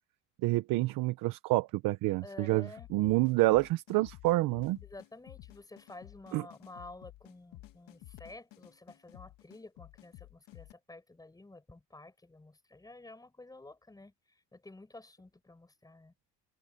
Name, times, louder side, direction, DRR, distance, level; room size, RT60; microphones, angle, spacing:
voice 1, 0.4-4.8 6.3-6.4, right 19 dB, 70° right, 0.9 m, -28 dB
voice 2, 2.2-2.9 4.8-14.1 14.5-16.1, left 2 dB, 10° left, 6.4 m, -51 dB
sound 1, 2.8-10.7, left 17 dB, 70° left, 1.6 m, -53 dB
cardioid pair, 130°, 35 cm